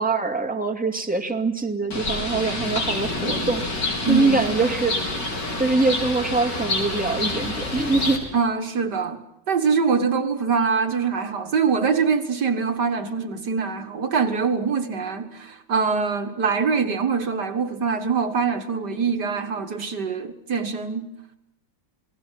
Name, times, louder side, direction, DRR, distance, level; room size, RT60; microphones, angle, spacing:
voice 1, 0.0-5.2 5.6-8.3, right 3 dB, 5° right, 3 dB, 2.3 m, -24 dB
Bird, 1.9-8.2, left 2 dB, 65° left, 5.0 m, -27 dB
voice 2, 4.1-4.7 8.3-9.2 9.5-21.1, right 5 dB, 60° right, 8 dB, 2.2 m, -24 dB
28.5 x 19.5 x 7.5 m, 0.85 s
omnidirectional pair, 2.0 m